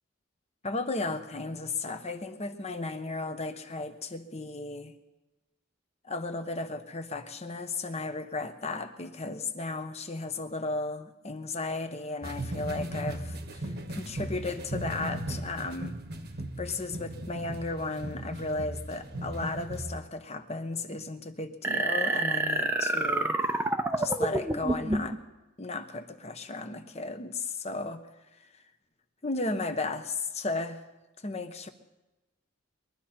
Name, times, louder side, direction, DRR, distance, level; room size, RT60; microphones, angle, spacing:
voice 1, 0.6-4.9 6.0-16.0 16.6-23.4 24.0-25.2 25.6-28.0 29.2-30.8 31.2-31.7, left 3 dB, 30° left, 8 dB, 1.0 m, -35 dB
sound 1, 12.2-20.0, right 1 dB, 55° right, 1.2 m, -37 dB
sound 2, 21.6-25.2, right 2 dB, 10° right, 0.7 m, -28 dB
22.0 x 12.0 x 4.4 m, 1.0 s
head